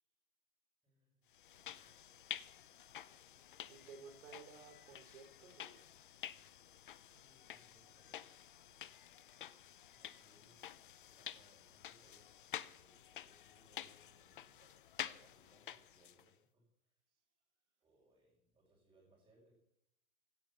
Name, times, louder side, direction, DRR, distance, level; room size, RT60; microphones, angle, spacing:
voice 1, 0.8-1.2 1.5-1.9 3.4-3.9 7.1-9.0 9.9-17.0 17.8-19.5, right 1 dB, 10° right, -8 dB, 5.4 m, -71 dB
sound 1, 1.3-16.3, left 10 dB, 35° left, 0.6 m, -50 dB
voice 2, 3.7-5.8, right 5 dB, 50° right, 6 dB, 4.6 m, -56 dB
17.0 x 11.0 x 7.1 m, 0.76 s
hypercardioid pair, 155°, 45 cm